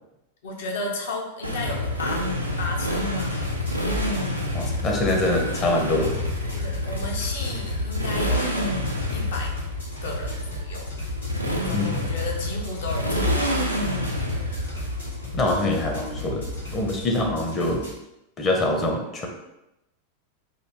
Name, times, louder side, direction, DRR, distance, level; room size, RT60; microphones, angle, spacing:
voice 1, 0.4-2.3 2.6-3.4 4.6-5.3 6.5-8.8 9.1-9.5 10.0-11.0 11.6-13.8, left 2 dB, 55° left, 0 dB, 0.8 m, -34 dB
Motorcycle, 1.4-17.2, left 1 dB, 90° right, 0.5 m, -28 dB
sound 1, 2.9-17.9, equal, 80° left, 1.3 m, -39 dB
voice 2, 4.5-6.1 11.7-12.0 15.3-16.4 16.7-17.8 18.4-19.3, left 2 dB, 25° left, 1 dB, 0.8 m, -24 dB
3.9 x 2.7 x 3.4 m, 0.89 s
figure-of-eight pair, 90°, 0 cm